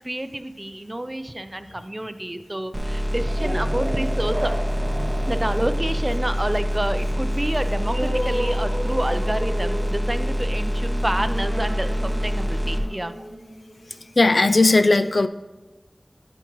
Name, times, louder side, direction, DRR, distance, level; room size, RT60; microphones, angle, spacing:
voice 1, 0.0-4.5 5.3-13.1, right 1 dB, 30° right, 10 dB, 0.6 m, -29 dB
sound 1, 2.7-12.8, equal, 10° right, 1.2 m, -25 dB
sound 2, 3.2-14.3, right 1 dB, 55° right, 1.2 m, -34 dB
voice 2, 13.9-15.3, left 2 dB, 70° left, 11 dB, 0.4 m, -18 dB
11.5 x 6.0 x 3.1 m, 1.2 s
wide cardioid pair, 50°, 0 cm